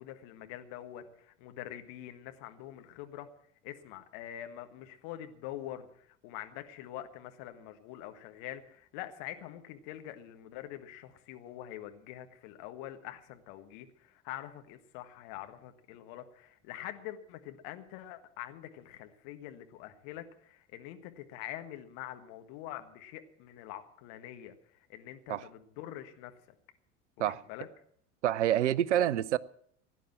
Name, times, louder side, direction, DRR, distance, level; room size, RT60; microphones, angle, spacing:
voice 1, 0.0-3.3 3.6-26.4 27.2-27.7, left 12 dB, 50° left, 1.6 m, -45 dB
voice 2, 28.2-29.4, right 11 dB, 65° right, 0.6 m, -27 dB
17.0 x 10.0 x 7.3 m
figure-of-eight pair, 75°, 38 cm